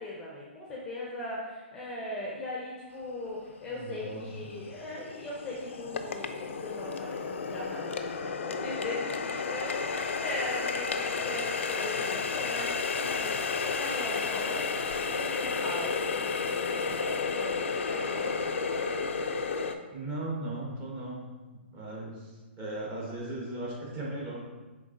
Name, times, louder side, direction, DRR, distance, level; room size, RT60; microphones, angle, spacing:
voice 1, 0.0-18.9, left 1 dB, 10° left, -4 dB, 0.6 m, -39 dB
Water tap faucet, 3.3-3.4 3.9-19.8, left 5 dB, 85° left, 0.4 m, -32 dB
voice 2, 3.6-4.7 19.9-21.3 21.7-24.4, right 2 dB, 25° right, -4 dB, 1.2 m, -37 dB
5.1 x 3.6 x 2.6 m, 1.2 s
hypercardioid pair, 150°, 7 cm